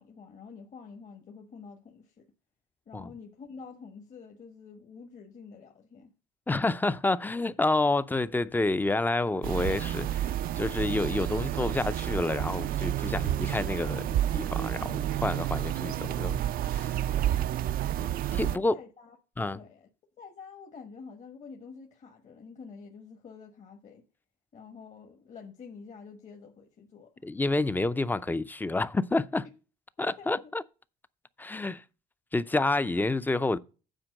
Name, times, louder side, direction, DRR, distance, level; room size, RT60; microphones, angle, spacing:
voice 1, 0.0-2.3 2.8-6.1 17.1-17.3 18.3-19.9 20.2-24.0 24.5-27.3 30.2-30.4, left 5 dB, 45° left, 1.3 m, -48 dB
voice 2, 6.5-10.3 10.6-16.4 16.7-17.0 18.4-18.7 19.4-19.6 27.2-29.4 30.0-30.6 31.4-31.8 32.3-33.6, left 2 dB, 10° left, 0.5 m, -29 dB
sound 1, 9.4-18.6, right 12 dB, 60° right, 0.4 m, -30 dB
9.0 x 4.5 x 6.4 m
cardioid pair, 110°, 17 cm